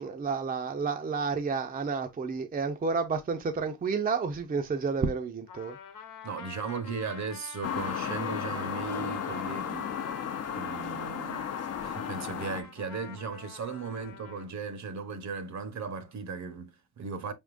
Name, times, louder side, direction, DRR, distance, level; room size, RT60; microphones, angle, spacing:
voice 1, 0.0-5.8, right 5 dB, 30° right, 0.5 m, -30 dB
Trumpet, 5.5-14.5, left 6 dB, 90° left, 1.0 m, -46 dB
voice 2, 6.2-10.0 10.5-11.5 11.8-17.3, right 5 dB, 60° right, 0.9 m, -37 dB
sound 1, 7.6-12.6, left 8 dB, 50° left, 0.6 m, -34 dB
5.4 x 3.6 x 2.4 m
wide cardioid pair, 155°, 32 cm